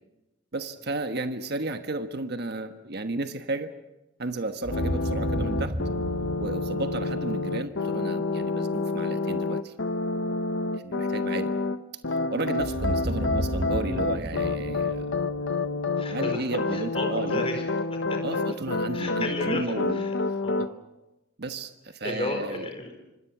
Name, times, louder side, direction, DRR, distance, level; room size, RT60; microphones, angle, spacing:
voice 1, 0.5-3.7 4.2-5.8 6.4-9.7 10.7-11.5 12.3-15.2 16.1-17.4 18.2-20.0 20.6-20.7 21.4-22.7, right 2 dB, 55° right, 8 dB, 1.3 m, -33 dB
sound 1, 4.6-7.6 12.6-15.8, equal, 85° right, 5.4 m, -32 dB
sound 2, 4.7-11.8 12.0-20.7, left 3 dB, 65° left, 1.0 m, -28 dB
voice 2, 16.0-17.6 17.9-18.2 18.9-20.1 20.4-20.7 22.0-23.0, left 2 dB, 30° left, 4 dB, 4.7 m, -33 dB
27.0 x 25.5 x 6.0 m, 0.98 s
head